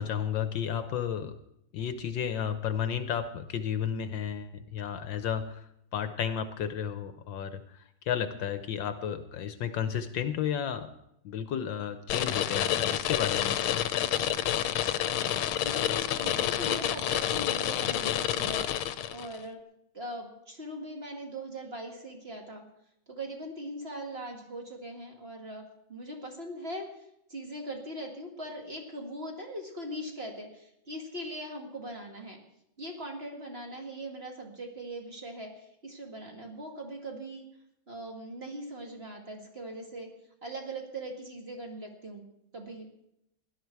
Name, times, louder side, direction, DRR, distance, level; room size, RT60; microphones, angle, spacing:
voice 1, 0.0-1.3 1.7-5.6 5.9-10.9 11.2-13.8, left 8 dB, 70° left, 11 dB, 1.4 m, -33 dB
sound 1, 12.1-19.4, left 11 dB, 90° left, 1.6 m, -29 dB
voice 2, 15.6-18.8 19.1-19.6 19.9-22.6 23.1-25.6 25.9-32.4 32.8-37.5 37.9-40.1 40.4-42.3 42.5-42.9, right 1 dB, 30° right, 1 dB, 2.2 m, -40 dB
17.5 x 11.5 x 4.6 m, 0.80 s
omnidirectional pair, 2.2 m